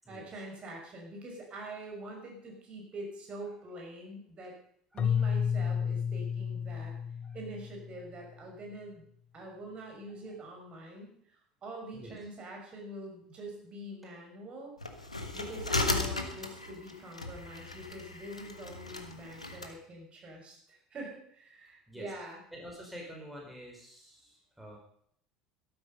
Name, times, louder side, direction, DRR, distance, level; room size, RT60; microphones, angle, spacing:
voice 1, 0.1-4.5 4.9-6.9 7.3-9.0 9.3-11.3 11.6-14.7 15.3-22.4, right 1 dB, 30° right, 1 dB, 5.8 m, -45 dB
voice 2, 4.9-5.3 7.2-7.4 8.0-8.3 10.2-10.3 11.9-12.2 15.2-15.4 21.9-22.1 22.5-24.8, equal, 5° right, -1 dB, 4.7 m, -48 dB
Keyboard (musical), 5.0-8.1, left 7 dB, 30° left, 0.5 m, -31 dB
sound 1, 14.8-19.7, left 2 dB, 85° left, 1.3 m, -36 dB
13.5 x 12.5 x 5.4 m, 0.65 s
figure-of-eight pair, 70°, 3 cm